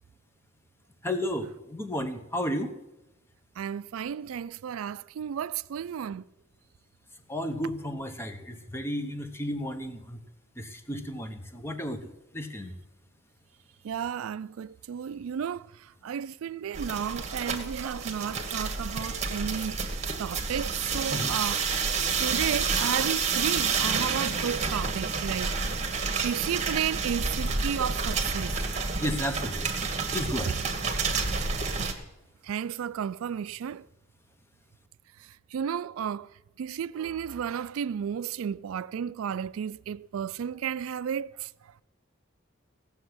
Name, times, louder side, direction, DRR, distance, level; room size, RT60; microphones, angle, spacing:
voice 1, 1.0-2.7 7.3-10.2 10.6-12.7 21.1-21.3 29.0-29.7 30.1-30.6, equal, 10° left, 0.9 m, -33 dB
voice 2, 3.6-6.3 13.8-15.7 16.0-21.6 22.2-25.5 26.2-28.5 31.8-31.9 32.4-33.9 35.5-36.3 36.6-41.5, right 8 dB, 90° right, 0.3 m, -33 dB
sound 1, 16.7-31.9, right 5 dB, 35° right, 1.3 m, -29 dB
16.0 x 6.9 x 7.9 m
head